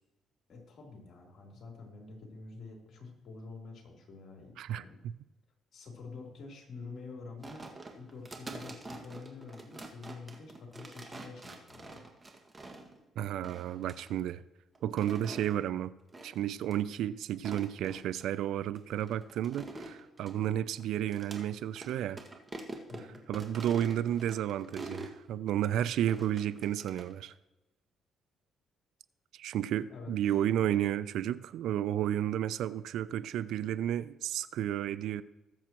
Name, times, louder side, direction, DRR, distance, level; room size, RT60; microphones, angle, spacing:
voice 1, 0.5-5.0 5.7-7.7 7.9-12.0 22.9-23.2 29.9-30.1 30.6-30.8, left 4 dB, 60° left, 0 dB, 3.3 m, -47 dB
sound 1, 7.4-13.0 13.4-14.1 14.8-15.6 16.1-16.4 16.7-16.8 17.3-18.2 18.8-21.5 21.8-21.9 22.2-25.2 26.1-27.1, right 2 dB, 25° right, 1.8 m, -46 dB
voice 2, 13.2-14.4 14.8-15.9 16.2-22.2 23.3-27.3 29.3-35.2, right 11 dB, 75° right, 16 dB, 0.4 m, -32 dB
20.5 x 7.4 x 3.0 m, 1.0 s
cardioid pair, 80°, 0 cm